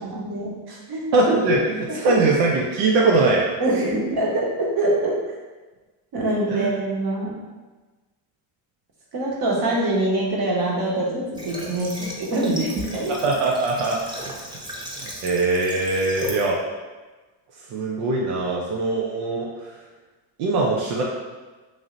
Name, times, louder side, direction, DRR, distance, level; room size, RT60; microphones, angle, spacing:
voice 1, 0.0-1.1 2.1-2.2 3.6-5.4 6.1-7.4 9.1-13.1, right 1 dB, 55° right, -3 dB, 1.2 m, -24 dB
voice 2, 1.1-3.5 6.5-6.7 13.1-14.4 15.0-16.6 17.7-19.7 20.4-21.0, right 3 dB, 90° right, -2 dB, 0.6 m, -22 dB
Water / Water tap faucet, 11.3-16.5, equal, 10° right, 0.7 m, -37 dB
3.2 x 2.6 x 3.8 m, 1.2 s
supercardioid pair, 90°, 46 cm